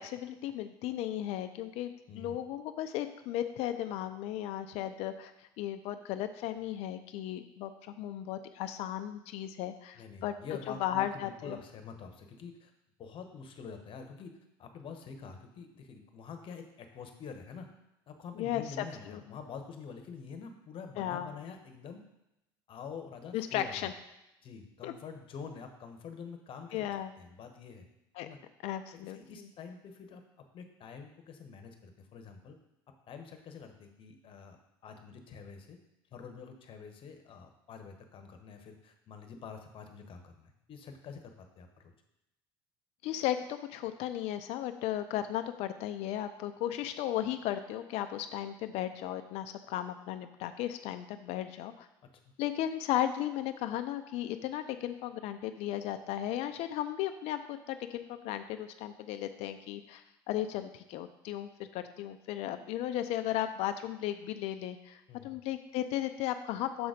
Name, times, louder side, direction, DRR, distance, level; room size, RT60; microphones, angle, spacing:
voice 1, 0.0-5.3 5.6-10.3 10.8-11.6 18.4-19.4 21.0-21.3 23.3-23.9 24.8-24.9 26.7-27.1 28.2-28.3 28.6-29.5 43.0-51.9 52.4-66.9, left 12 dB, 65° left, 8 dB, 0.5 m, -35 dB
voice 2, 2.1-2.4 9.9-12.7 13.0-14.3 14.6-17.7 18.1-22.0 22.7-23.9 24.4-26.8 27.2-27.9 28.2-28.4 29.1-30.2 30.5-32.6 33.1-34.6 34.8-35.8 36.1-41.9 52.2-52.3 65.1-65.4, left 5 dB, 50° left, 6 dB, 1.1 m, -46 dB
6.9 x 3.9 x 5.0 m, 0.89 s
hypercardioid pair, 80°, 12 cm